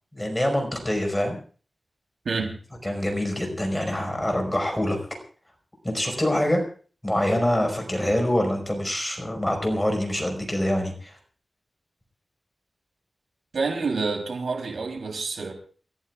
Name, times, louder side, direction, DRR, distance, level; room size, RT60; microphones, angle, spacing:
voice 1, 0.1-1.4 2.8-5.0 5.8-6.6 7.0-11.2, left 1 dB, 10° left, 3 dB, 5.1 m, -25 dB
voice 2, 2.3-2.6 13.5-15.5, right 4 dB, 90° right, 4 dB, 3.5 m, -28 dB
29.0 x 14.5 x 2.4 m, 0.41 s
wide cardioid pair, 90°, 0 cm